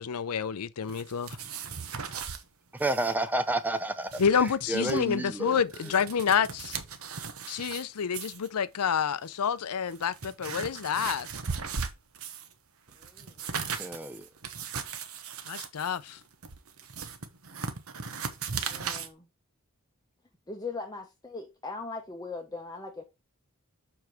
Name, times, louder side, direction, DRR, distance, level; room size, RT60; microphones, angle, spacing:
voice 1, 0.0-1.4 4.2-6.8 7.5-11.3 15.5-16.2, left 7 dB, 90° left, 0.6 m, -28 dB
sound 1, 0.9-2.4 2.8-3.1 3.4-3.5 3.9-5.0 5.5-7.8 8.1-8.5 9.2-9.3 9.8-12.5 12.9-19.1, right 6 dB, 75° right, 1.1 m, -37 dB
voice 2, 2.7-5.6 13.8-14.3, right 2 dB, 10° right, 0.4 m, -30 dB
voice 3, 13.0-13.8 18.7-19.3 20.5-23.0, left 3 dB, 15° left, 0.8 m, -40 dB
7.1 x 4.7 x 4.4 m
head